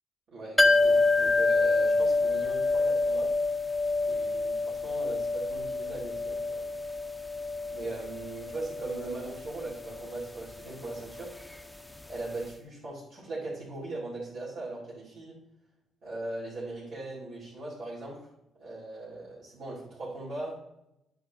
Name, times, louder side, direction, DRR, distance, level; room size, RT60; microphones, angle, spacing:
voice 1, 0.3-3.3 4.0-6.6 7.7-11.4 12.1-15.4 16.0-18.3 18.6-20.5, right 2 dB, 75° right, -7 dB, 3.1 m, -39 dB
sound 1, 0.6-12.2 12.4-12.5, left 3 dB, 5° left, 0.5 m, -28 dB
9.0 x 5.2 x 3.8 m, 0.86 s
cardioid pair, 90°, 0 cm